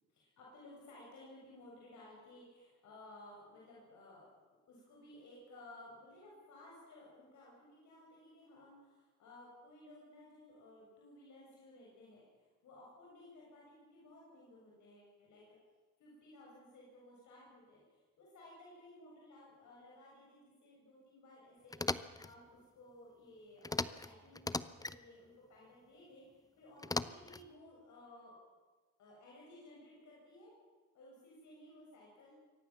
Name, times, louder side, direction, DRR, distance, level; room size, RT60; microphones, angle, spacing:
voice 1, 0.1-4.4 4.7-15.6 16.0-28.4 29.0-30.5 30.9-32.4, left 1 dB, 70° left, -4 dB, 7.5 m, -57 dB
sound 1, 21.7-22.3 23.6-24.1 24.3-25.0 26.8-27.5, left 2 dB, 10° left, 0.8 m, -38 dB
24.0 x 18.0 x 7.4 m, 1.3 s
cardioid pair, 90°, 30 cm